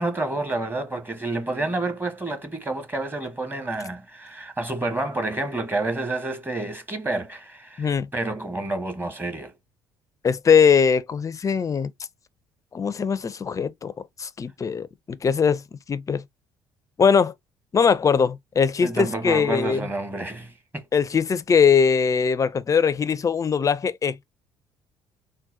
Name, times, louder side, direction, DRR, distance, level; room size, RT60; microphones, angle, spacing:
voice 1, 0.0-9.5 18.8-20.8, right 2 dB, 15° right, 1.1 m, -29 dB
voice 2, 10.2-11.9 12.7-13.9 14.2-15.6 15.9-16.2 17.0-17.3 17.7-19.9 20.9-24.2, left 6 dB, 25° left, 0.5 m, -21 dB
3.8 x 2.2 x 2.7 m
figure-of-eight pair, 50°, 12 cm